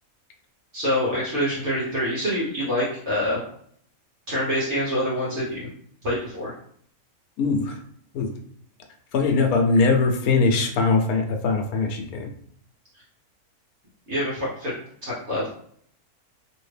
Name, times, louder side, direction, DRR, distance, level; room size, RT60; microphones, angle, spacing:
voice 1, 0.7-3.4 4.3-5.7 6.0-6.5 14.1-14.7 15.0-15.5, equal, 55° right, -7 dB, 1.2 m, -26 dB
voice 2, 7.4-7.8 8.1-8.3 9.1-12.3, left 3 dB, 80° left, 3 dB, 1.1 m, -21 dB
2.8 x 2.7 x 3.3 m, 0.64 s
omnidirectional pair, 1.6 m